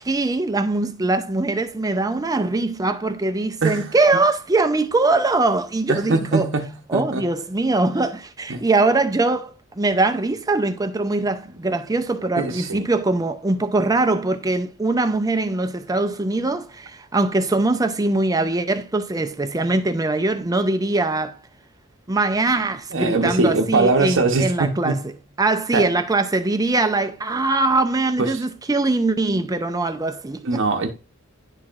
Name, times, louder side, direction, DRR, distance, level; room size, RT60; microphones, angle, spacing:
voice 1, 0.0-6.5 6.9-21.4 22.1-25.1 25.4-30.6, right 2 dB, 15° right, 0.5 m, -22 dB
voice 2, 3.6-3.9 5.9-7.2 8.5-8.6 12.3-12.8 22.9-25.0 25.7-25.9 28.2-28.4 30.4-30.9, right 3 dB, 60° right, 0.9 m, -22 dB
10.5 x 4.5 x 2.5 m
head